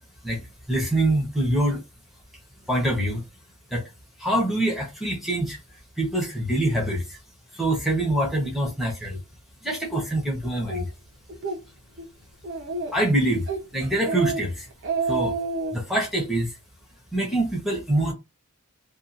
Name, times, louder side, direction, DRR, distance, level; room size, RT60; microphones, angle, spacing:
voice 1, 0.7-1.8 2.7-3.2 3.7-3.9 4.2-5.6 6.0-7.2 7.5-9.2 9.6-10.9 12.9-14.7 15.1-15.4 15.7-16.6 17.1-18.1, right 1 dB, ahead, 0.8 m, -25 dB
Speech, 10.7-10.8 11.3-11.6 12.0-12.1 12.4-13.1 13.5-13.7 14.0-14.4 14.7-15.8, right 3 dB, 55° right, 0.7 m, -28 dB
2.7 x 2.4 x 2.4 m
head